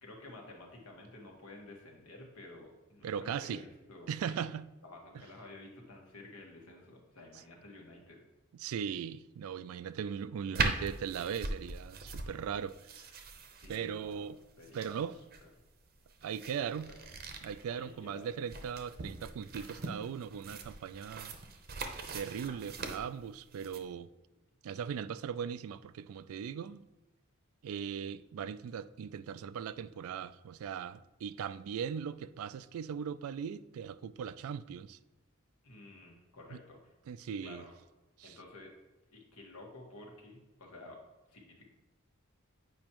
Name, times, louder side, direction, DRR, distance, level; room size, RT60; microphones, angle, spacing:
voice 1, 0.0-4.5 4.8-8.2 13.6-15.1 16.4-17.1 17.7-18.3 35.6-36.9 37.4-37.7 38.2-38.7 39.1-41.0 41.3-41.6, left 2 dB, 85° left, 1.5 m, -52 dB
voice 2, 3.0-3.6 4.1-4.7 8.5-13.1 13.7-14.4 14.7-15.2 16.2-16.9 17.4-21.3 22.1-24.1 24.6-26.9 27.6-35.0 37.1-37.7 38.2-38.4, right 7 dB, 75° right, 0.3 m, -39 dB
sound 1, 10.5-23.8, right 3 dB, 45° right, 0.7 m, -41 dB
8.7 x 5.1 x 3.0 m
head